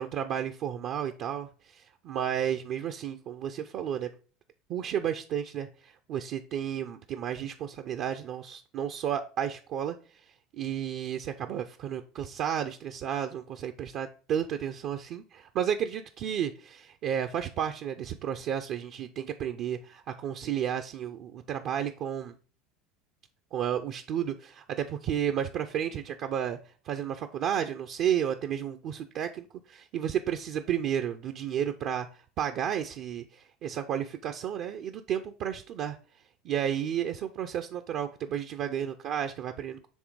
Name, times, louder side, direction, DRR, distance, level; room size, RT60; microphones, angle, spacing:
voice 1, 0.0-4.1 4.7-10.0 10.5-22.4 23.5-26.6 26.8-36.0 36.4-39.9, right 9 dB, 55° right, 0.5 m, -32 dB
7.3 x 3.3 x 4.7 m
hypercardioid pair, 80°, 0 cm